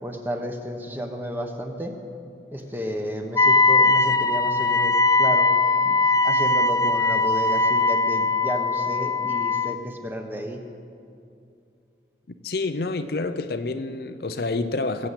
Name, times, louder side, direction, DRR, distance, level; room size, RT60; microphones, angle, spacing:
voice 1, 0.0-2.0 2.5-5.5 5.8-10.6, equal, 10° right, 4 dB, 1.1 m, -32 dB
Wind instrument woodwind instrument, 3.3-9.8, left 3 dB, 20° left, 0.3 m, -20 dB
voice 2, 12.4-15.1, left 3 dB, 60° left, 9 dB, 0.6 m, -28 dB
20.5 x 7.6 x 8.3 m, 2.5 s
head